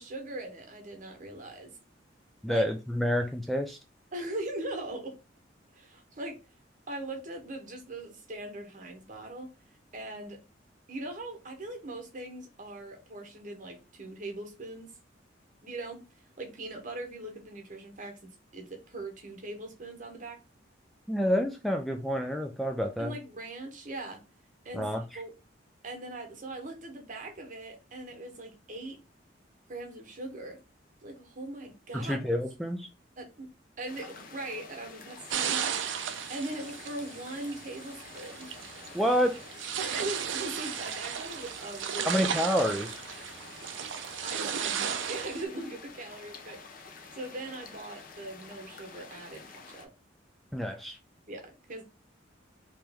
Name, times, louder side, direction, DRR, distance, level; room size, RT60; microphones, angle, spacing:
voice 1, 0.0-1.8 2.5-2.7 4.1-5.2 5.7-6.4 6.9-9.5 9.9-10.4 10.9-14.9 15.6-16.1 16.4-20.4 23.0-24.2 24.6-24.9 25.1-25.3 25.8-29.0 29.7-30.6 31.0-32.3 33.2-33.5 33.8-35.8 36.3-38.5 39.8-42.2 44.2-49.9 51.3-51.8, right 2 dB, 45° right, 1.1 m, -40 dB
voice 2, 2.4-3.8 21.1-23.1 24.7-25.0 31.9-32.9 38.9-39.4 42.1-43.0 50.5-51.0, equal, ahead, 0.3 m, -28 dB
sound 1, 33.9-49.8, left 4 dB, 50° left, 0.7 m, -49 dB
sound 2, 35.3-45.4, right 8 dB, 80° right, 0.5 m, -35 dB
3.1 x 3.0 x 3.4 m
head